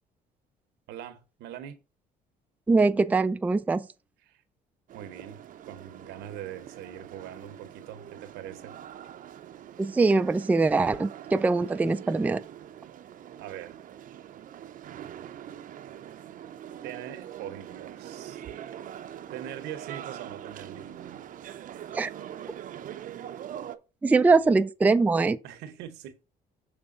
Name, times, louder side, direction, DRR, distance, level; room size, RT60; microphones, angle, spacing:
voice 1, 0.9-1.8 4.2-4.4 4.9-8.8 13.4-13.8 16.8-18.4 19.3-21.3 24.1-24.5 25.4-26.2, right 10 dB, 85° right, 0.9 m, -42 dB
voice 2, 2.7-3.9 9.8-12.4 21.9-22.1 24.0-25.4, right 3 dB, 10° right, 0.3 m, -22 dB
sound 1, 4.9-23.8, right 10 dB, 55° right, 0.6 m, -43 dB
6.8 x 3.4 x 5.0 m
cardioid pair, 110°, 17 cm